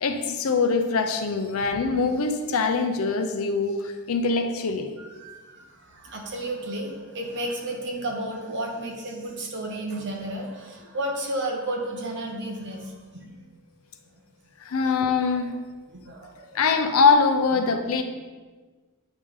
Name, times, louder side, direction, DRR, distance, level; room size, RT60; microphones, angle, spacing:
voice 1, 0.0-4.9 14.6-15.5 16.5-18.0, left 4 dB, 65° left, 7 dB, 0.5 m, -23 dB
voice 2, 5.2-13.3 14.9-15.1 15.9-16.5 17.5-17.9, right 1 dB, 55° right, 0 dB, 1.0 m, -33 dB
8.2 x 3.4 x 3.6 m, 1.4 s
head